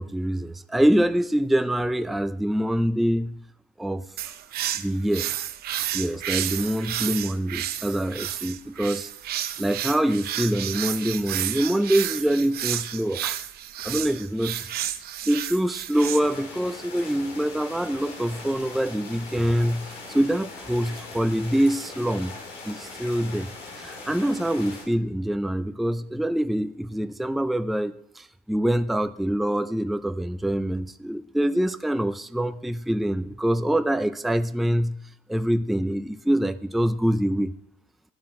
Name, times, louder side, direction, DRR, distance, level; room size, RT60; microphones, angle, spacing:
voice 1, 0.0-3.4 3.8-4.0 4.8-5.3 5.9-9.1 9.6-13.3 13.8-14.7 15.3-22.3 22.7-23.5 23.8-35.0 35.3-37.5, right 1 dB, ahead, 11 dB, 0.4 m, -25 dB
sound 1, 4.2-16.2, right 12 dB, 65° right, 0.7 m, -31 dB
sound 2, 15.9-24.8, left 3 dB, 80° left, 4.1 m, -40 dB
11.5 x 8.6 x 4.3 m, 0.70 s
cardioid pair, 110°, 17 cm